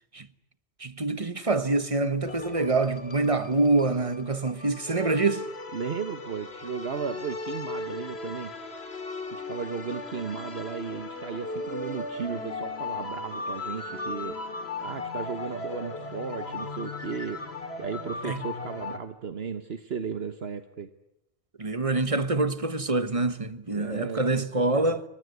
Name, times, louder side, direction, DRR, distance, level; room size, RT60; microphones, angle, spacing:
voice 1, 0.8-5.5 18.2-18.4 21.6-25.0, right 3 dB, 35° right, 1.3 m, -26 dB
sound 1, 2.2-19.0, left 3 dB, 75° left, 2.7 m, -37 dB
voice 2, 5.7-8.5 9.3-14.4 14.8-17.4 17.8-20.9 23.7-24.9, right 6 dB, 70° right, 1.4 m, -35 dB
29.0 x 24.5 x 8.2 m
omnidirectional pair, 1.1 m